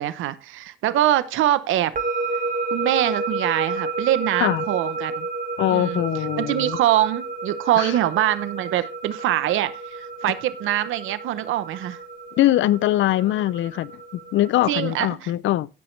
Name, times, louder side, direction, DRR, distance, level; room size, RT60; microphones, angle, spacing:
voice 1, 0.0-1.9 2.7-5.3 5.7-6.0 6.4-12.0 14.7-15.3, right 13 dB, 85° right, 0.8 m, -23 dB
sound 1, 2.0-14.9, right 3 dB, 45° right, 1.5 m, -31 dB
voice 2, 5.6-6.8 7.8-7.9 12.4-13.9 14.3-15.7, left 14 dB, 75° left, 0.5 m, -22 dB
16.5 x 6.0 x 3.2 m
cardioid pair, 90°, 20 cm